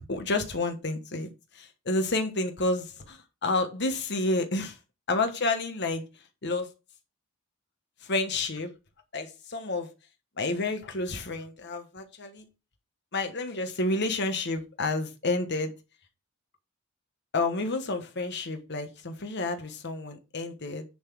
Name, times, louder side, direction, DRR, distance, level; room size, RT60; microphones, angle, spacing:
voice 1, 0.1-1.3 1.5-4.8 5.1-6.0 6.4-6.7 8.0-8.7 9.1-9.9 10.4-12.4 13.1-15.7 17.3-20.8, left 2 dB, 50° left, 6 dB, 1.3 m, -30 dB
10.0 x 4.0 x 6.1 m, 0.28 s
head